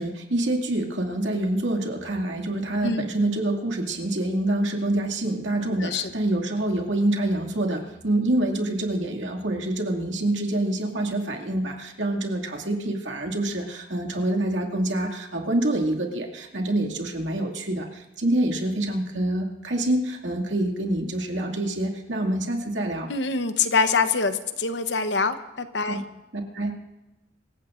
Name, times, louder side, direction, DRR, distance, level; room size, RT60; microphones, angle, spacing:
voice 1, 0.0-23.1 25.9-26.0 26.3-26.8, right 1 dB, 80° right, 1 dB, 2.3 m, -26 dB
voice 2, 5.8-6.1 23.1-26.0, left 4 dB, 65° left, 9 dB, 0.9 m, -25 dB
25.5 x 15.5 x 2.6 m, 1.0 s
head